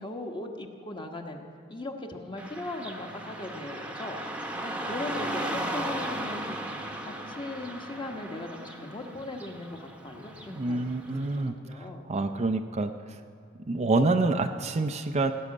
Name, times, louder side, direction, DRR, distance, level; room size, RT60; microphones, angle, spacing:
voice 1, 0.0-6.7 7.0-12.1, left 2 dB, 25° left, 2 dB, 1.2 m, -39 dB
Car passing by / Traffic noise roadway noise, 2.4-11.4, right 1 dB, 5° right, 1.0 m, -36 dB
voice 2, 10.5-13.2 13.7-15.3, right 3 dB, 35° right, 7 dB, 0.5 m, -27 dB
17.0 x 6.3 x 9.5 m, 2.4 s
head